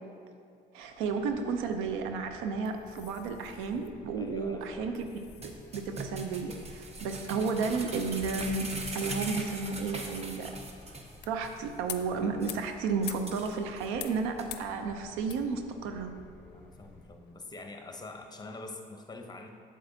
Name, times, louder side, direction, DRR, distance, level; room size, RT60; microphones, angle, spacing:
voice 1, 0.7-10.5 11.3-16.1, right 4 dB, 80° right, 6 dB, 0.6 m, -33 dB
sound 1, 0.8-17.7, left 11 dB, 55° left, 0.5 m, -50 dB
sound 2, 1.3-17.1, left 2 dB, 5° left, 1.2 m, -54 dB
voice 2, 4.2-4.9 16.4-19.5, left 2 dB, 20° left, 4 dB, 0.8 m, -45 dB
sound 3, 5.4-11.2 11.4-11.5 11.9-12.0 12.4-12.6 13.0-13.9 14.4-14.5, right 2 dB, 30° right, 0.9 m, -40 dB
7.9 x 7.5 x 2.7 m, 2.3 s
hypercardioid pair, 60°, 20 cm